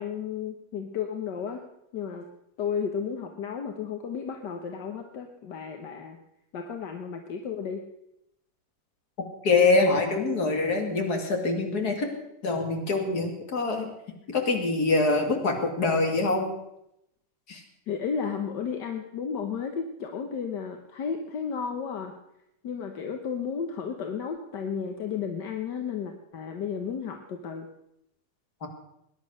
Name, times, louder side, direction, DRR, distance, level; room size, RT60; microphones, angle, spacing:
voice 1, 0.0-1.6 1.9-2.3 2.6-6.2 6.5-7.8 17.9-22.1 22.6-27.7, left 6 dB, 85° left, 4 dB, 1.8 m, -33 dB
voice 2, 9.4-12.1 12.4-13.9 14.3-16.5 17.5-17.6 28.6-28.7, left 3 dB, 65° left, 2 dB, 3.1 m, -24 dB
20.0 x 10.5 x 6.5 m, 0.82 s
omnidirectional pair, 1.8 m